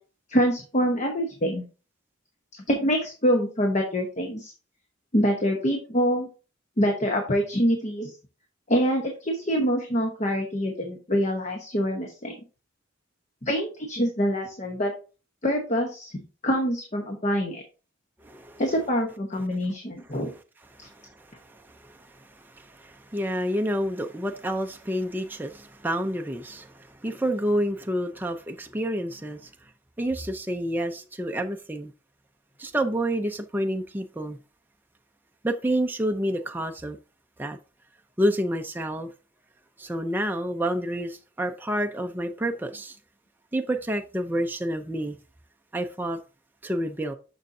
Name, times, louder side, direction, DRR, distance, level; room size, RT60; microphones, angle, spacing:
voice 1, 0.3-1.6 2.7-4.5 5.1-6.3 6.8-8.1 8.7-12.3 13.4-14.9 15.4-17.6 18.6-20.3, equal, 35° left, 1.0 m, -25 dB
voice 2, 18.2-18.6 21.2-21.3 21.6-22.0 22.5-29.5 30.0-31.9 32.6-34.4 35.4-37.0 37.4-37.6 38.2-39.1 39.8-43.0 43.5-45.2 45.7-46.2 46.6-47.1, right 1 dB, 10° right, 0.5 m, -28 dB
6.6 x 6.3 x 2.7 m
head